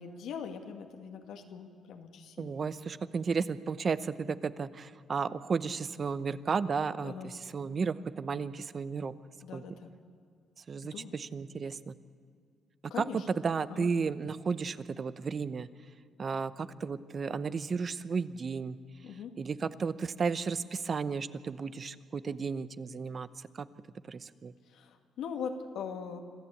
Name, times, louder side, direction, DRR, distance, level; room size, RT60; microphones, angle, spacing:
voice 1, 0.0-2.6 7.0-7.3 9.4-9.9 10.8-11.1 12.9-13.2 13.7-13.9 19.0-19.3 24.7-26.2, left 6 dB, 80° left, 4 dB, 1.9 m, -41 dB
voice 2, 2.4-9.1 9.5-9.6 10.7-11.9 13.0-15.7 16.2-18.8 19.4-23.3 23.5-23.7 24.1-24.5, right 5 dB, 45° right, 14 dB, 0.8 m, -33 dB
26.5 x 14.0 x 8.6 m, 2.2 s
cardioid pair, 90°, 0 cm